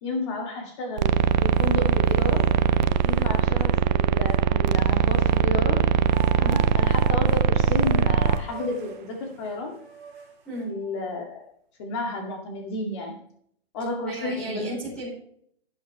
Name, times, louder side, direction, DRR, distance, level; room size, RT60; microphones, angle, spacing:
voice 1, 0.0-1.2 1.4-2.5 3.0-5.8 6.4-9.8 10.6-11.5 11.8-13.2 13.7-14.8, left 2 dB, 30° left, 2 dB, 2.2 m, -32 dB
sound 1, 1.0-1.1 1.5-2.5 3.1-3.2 4.3-5.4 6.0-10.9, right 7 dB, 25° right, 3.8 m, -45 dB
sound 2, 1.0-8.4, right 7 dB, 50° right, 0.6 m, -21 dB
voice 2, 14.1-15.1, right 1 dB, 5° left, -8 dB, 4.1 m, -34 dB
13.0 x 8.3 x 3.2 m, 0.64 s
hypercardioid pair, 175°, 30 cm